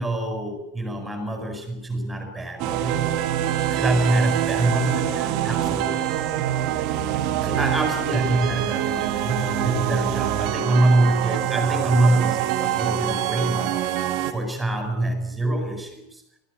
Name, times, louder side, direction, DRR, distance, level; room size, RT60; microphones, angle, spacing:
voice 1, 0.0-3.1 3.7-6.1 7.4-13.9 14.3-16.2, right 1 dB, 5° right, 5 dB, 7.9 m, -25 dB
sound 1, 2.6-14.3, right 11 dB, 40° right, 2.5 m, -25 dB
23.5 x 17.5 x 8.8 m, 0.79 s
figure-of-eight pair, 90°, 0 cm